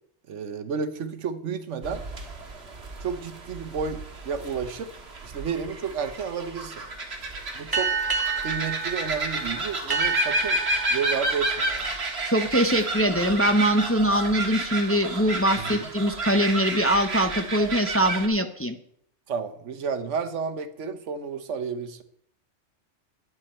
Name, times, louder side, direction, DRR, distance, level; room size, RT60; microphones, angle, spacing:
voice 1, 0.3-2.0 3.0-4.9 5.2-6.8 7.5-7.9 8.4-10.6 10.9-11.9 15.6-15.8 19.3-22.0, right 6 dB, 90° right, 9 dB, 1.3 m, -31 dB
sound 1, 1.8-18.3, right 2 dB, 65° right, 1.7 m, -31 dB
sound 2, 7.7-12.8, right 5 dB, 20° right, 1.4 m, -30 dB
voice 2, 12.2-18.8, equal, 15° left, 7 dB, 0.6 m, -23 dB
12.5 x 9.8 x 4.3 m, 0.67 s
omnidirectional pair, 1.2 m